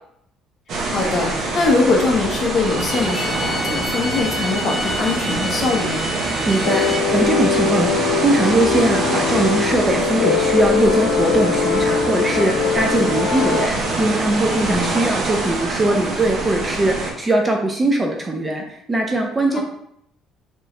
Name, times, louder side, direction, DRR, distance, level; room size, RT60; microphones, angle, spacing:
sound 1, 0.7-17.1, right 2 dB, 50° right, 1.0 m, -25 dB
voice 1, 0.9-6.0 14.7-14.8 19.5-19.6, left 3 dB, 35° left, 0 dB, 0.9 m, -22 dB
Bowed string instrument, 2.6-7.0, equal, 30° right, 1.2 m, -29 dB
voice 2, 6.4-19.6, right 2 dB, 15° right, 2 dB, 0.5 m, -21 dB
sound 2, 6.6-13.7, left 7 dB, 70° left, 0.4 m, -21 dB
4.4 x 3.0 x 3.3 m, 0.70 s
cardioid pair, 155°, 0 cm